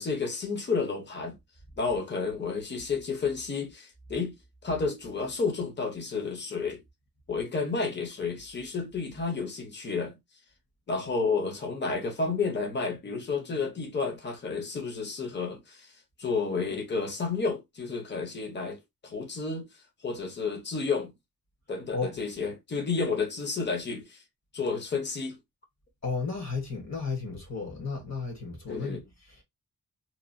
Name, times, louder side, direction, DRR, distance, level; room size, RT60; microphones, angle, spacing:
voice 1, 0.0-1.4 1.8-4.3 4.6-6.8 7.3-10.2 10.9-15.9 16.2-19.7 20.0-21.1 21.7-24.2 24.5-25.4 28.7-29.0, left 4 dB, 30° left, 0.8 m, -31 dB
voice 2, 26.0-29.4, left 4 dB, 50° left, 1.2 m, -34 dB
3.0 x 2.3 x 2.5 m
wide cardioid pair, 140°, 36 cm